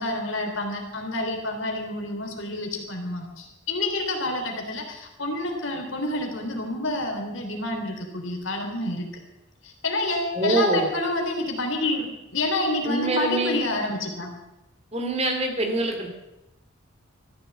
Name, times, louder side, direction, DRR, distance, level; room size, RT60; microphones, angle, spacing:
voice 1, 0.0-9.1 9.6-14.3, left 2 dB, 65° left, 2 dB, 3.3 m, -28 dB
voice 2, 10.3-10.9 12.8-13.6 14.9-16.1, right 2 dB, 30° right, 4 dB, 2.5 m, -24 dB
14.0 x 10.5 x 7.8 m, 0.91 s
head